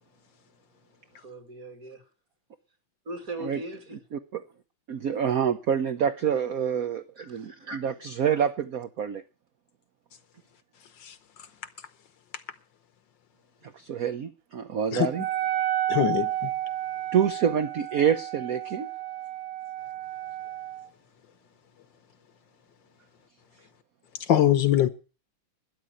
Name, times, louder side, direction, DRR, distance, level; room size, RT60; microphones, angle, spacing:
voice 1, 1.1-2.0 3.1-4.0 7.2-7.8, right 1 dB, 40° right, 2.8 m, -39 dB
voice 2, 4.1-4.4 4.9-9.2 13.7-15.2 17.1-18.9, right 8 dB, 55° right, 1.0 m, -27 dB
Wind instrument woodwind instrument, 15.1-20.9, right 12 dB, 75° right, 1.8 m, -31 dB
voice 3, 15.9-16.5 24.3-24.9, left 11 dB, 65° left, 1.5 m, -22 dB
12.5 x 10.0 x 9.0 m
omnidirectional pair, 2.3 m